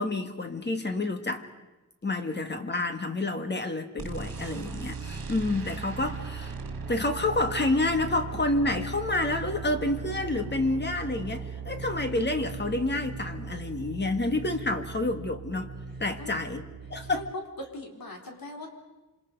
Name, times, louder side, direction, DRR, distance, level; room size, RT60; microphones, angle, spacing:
voice 1, 0.0-1.5 2.0-6.5 6.9-15.7 16.0-16.6 16.9-17.2, left 2 dB, 30° left, 7 dB, 1.6 m, -29 dB
sound 1, 4.0-17.3, right 5 dB, 75° right, 2.4 m, -38 dB
voice 2, 17.0-18.7, left 1 dB, 75° left, 1 dB, 4.1 m, -40 dB
27.5 x 27.0 x 5.3 m, 1.1 s
wide cardioid pair, 155°, 35 cm